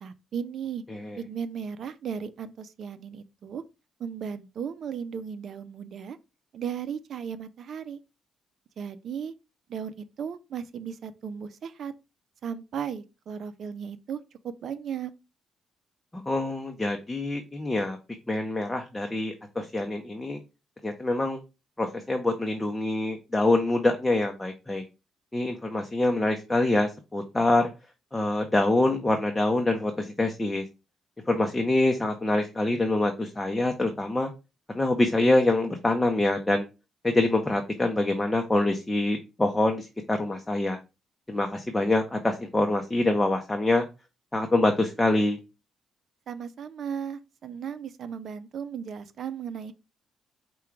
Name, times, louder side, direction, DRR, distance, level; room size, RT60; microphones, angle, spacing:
voice 1, 0.0-0.8 1.2-3.6 4.0-6.2 6.5-8.0 8.8-9.3 9.7-11.9 12.4-15.1 46.3-49.7, right 7 dB, 60° right, 0.5 m, -36 dB
voice 2, 16.1-18.0 18.3-20.4 20.8-21.4 21.8-24.8 25.3-27.7 28.1-30.6 31.3-34.3 34.7-36.6 37.0-40.8 41.3-43.8 44.3-45.4, left 2 dB, 15° left, 0.7 m, -25 dB
4.8 x 2.3 x 4.5 m
cardioid pair, 90°, 0 cm